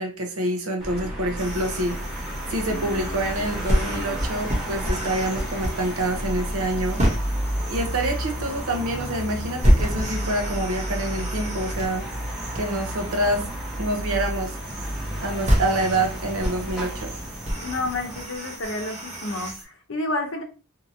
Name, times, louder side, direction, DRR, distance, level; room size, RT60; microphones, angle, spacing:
voice 1, 0.0-2.0 2.5-7.0 7.7-12.1 12.5-13.4 13.8-14.5 15.2-17.1, right 1 dB, 80° right, 3 dB, 0.8 m, -27 dB
sound 1, 0.8-18.2, equal, ahead, 0.9 m, -32 dB
sound 2, 1.4-19.6, equal, 30° right, 0.8 m, -29 dB
voice 2, 17.6-20.4, left 2 dB, 60° left, 4 dB, 0.7 m, -30 dB
2.8 x 2.6 x 2.6 m, 0.35 s
head